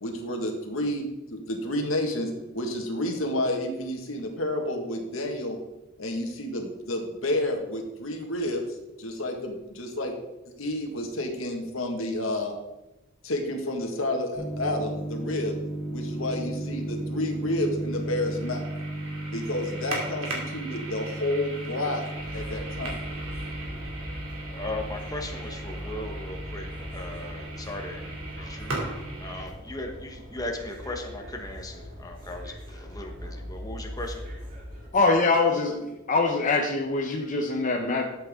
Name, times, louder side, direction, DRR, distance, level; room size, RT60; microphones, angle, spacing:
voice 1, 0.0-5.6 6.0-10.1 10.6-12.5 13.2-15.6 15.9-18.6 19.3-23.0, left 1 dB, 80° left, 2 dB, 1.8 m, -30 dB
sound 1, 14.3-29.5, right 1 dB, 90° right, 2.9 m, -35 dB
sound 2, 22.1-34.9, equal, 45° right, 4.0 m, -40 dB
voice 2, 24.5-34.2, left 2 dB, 20° left, 2 dB, 1.2 m, -38 dB
voice 3, 34.9-35.8 36.1-38.1, left 3 dB, 40° left, 1 dB, 0.9 m, -23 dB
12.5 x 8.1 x 3.7 m, 1.0 s
head